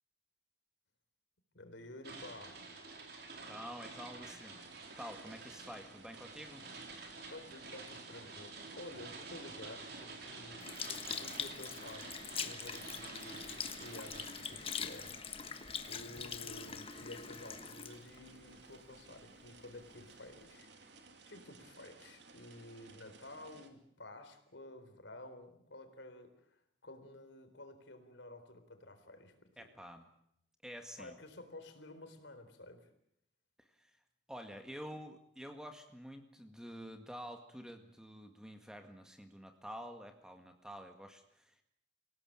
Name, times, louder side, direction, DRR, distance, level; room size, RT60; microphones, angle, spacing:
voice 1, 1.5-2.6 7.3-15.6 15.9-20.7 21.3-26.5 26.8-29.7 31.0-32.9, left 1 dB, 80° left, 7 dB, 4.0 m, -52 dB
sound 1, 2.0-15.2, right 3 dB, 60° right, 4.7 m, -50 dB
voice 2, 3.5-4.6 5.0-6.7 29.6-30.1 30.6-31.2 33.6-33.9 34.3-41.6, equal, 5° right, 5 dB, 1.9 m, -49 dB
sound 2, 4.6-23.7, right 3 dB, 75° right, 2.8 m, -58 dB
Sink (filling or washing) / Liquid, 10.6-19.2 19.8-19.9, left 7 dB, 30° left, 1.3 m, -43 dB
26.0 x 17.5 x 9.0 m, 0.73 s
head